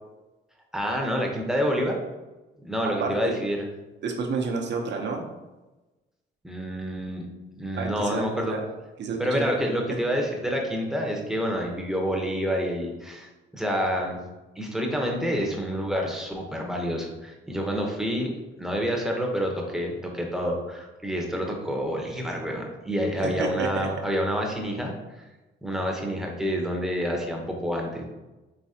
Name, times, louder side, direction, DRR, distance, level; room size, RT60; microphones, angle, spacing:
voice 1, 0.7-1.9 2.6-3.7 6.4-7.2 7.6-8.5 9.2-14.2 14.6-18.3 18.6-25.2 25.6-28.0, equal, ahead, 0 dB, 0.9 m, -28 dB
voice 2, 3.0-3.4 4.0-5.2 7.8-8.6 9.0-9.5 9.9-10.0 23.2-23.9, right 4 dB, 65° right, 2 dB, 0.8 m, -30 dB
4.9 x 3.0 x 2.8 m, 1.1 s
cardioid pair, 90°, 20 cm